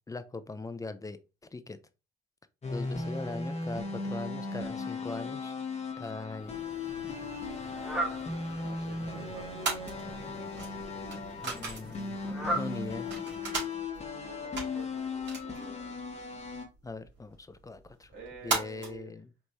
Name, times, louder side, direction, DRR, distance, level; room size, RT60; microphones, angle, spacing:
voice 1, 0.1-1.2 1.5-1.8 2.7-5.5 6.0-6.6 11.4-12.2 12.5-13.1 16.8-18.1 18.4-19.3, left 3 dB, 15° left, 0.4 m, -40 dB
sound 1, 2.6-16.6, left 3 dB, 35° left, 1.2 m, -37 dB
Fowl, 6.4-13.7, right 1 dB, 5° right, 1.1 m, -40 dB
sound 2, 6.4-19.0, right 4 dB, 60° right, 2.3 m, -40 dB
voice 2, 8.6-9.7 14.2-16.0 18.1-19.1, right 3 dB, 80° right, 2.3 m, -49 dB
4.6 x 3.0 x 2.7 m
cardioid pair, 90°, 20 cm